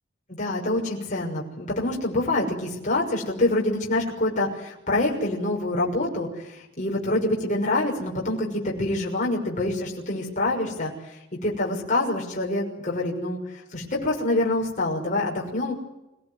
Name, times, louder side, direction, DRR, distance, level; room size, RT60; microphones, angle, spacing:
voice 1, 0.4-15.7, left 2 dB, 40° left, -2 dB, 6.2 m, -26 dB
27.0 x 17.5 x 9.7 m, 0.92 s
head